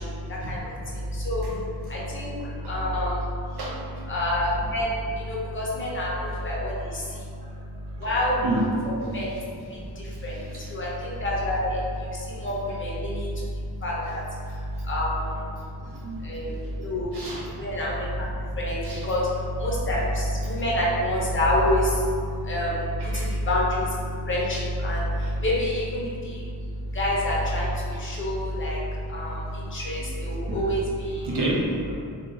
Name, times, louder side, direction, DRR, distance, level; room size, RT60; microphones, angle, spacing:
voice 1, 0.0-3.6 4.1-7.3 7.8-8.4 8.8-31.3, left 1 dB, 30° left, -5 dB, 0.6 m, -28 dB
voice 2, 8.4-8.9 10.3-10.6 15.8-16.3 17.1-17.5 18.8-19.0 23.0-23.3 27.9-28.0 30.3-30.6 31.2-31.9, right 1 dB, 75° right, -6 dB, 0.7 m, -30 dB
2.5 x 2.3 x 2.9 m, 2.3 s
wide cardioid pair, 120°, 40 cm